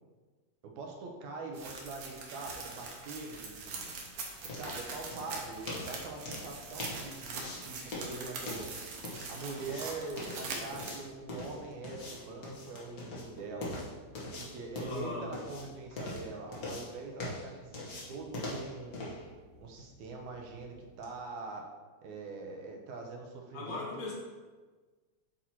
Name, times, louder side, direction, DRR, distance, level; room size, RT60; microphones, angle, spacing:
voice 1, 0.6-3.9 4.4-8.7 9.3-13.8 14.4-19.0 19.6-21.7 22.0-24.1, right 3 dB, 85° right, 1 dB, 2.2 m, -43 dB
sound 1, 1.5-10.9, right 4 dB, 65° right, 1.9 m, -43 dB
sound 2, 3.3-21.2, left 2 dB, 55° left, 0.9 m, -44 dB
voice 2, 14.8-15.3 23.5-24.1, left 3 dB, 75° left, -5 dB, 2.9 m, -38 dB
8.4 x 2.9 x 4.4 m, 1.3 s
omnidirectional pair, 3.4 m